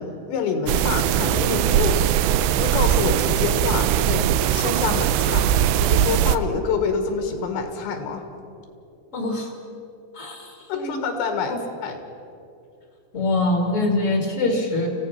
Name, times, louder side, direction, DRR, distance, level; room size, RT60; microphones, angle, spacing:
voice 1, 0.0-5.5 5.8-8.2 10.7-11.6 11.8-12.0, left 5 dB, 90° left, 5 dB, 4.0 m, -27 dB
sound 1, 0.7-6.4, right 11 dB, 85° right, 2.8 m, -20 dB
voice 2, 9.1-9.5 10.1-11.1 11.4-11.6 13.1-14.9, left 2 dB, 30° left, 1 dB, 1.4 m, -24 dB
29.5 x 16.0 x 5.9 m, 2.6 s
omnidirectional pair, 5.0 m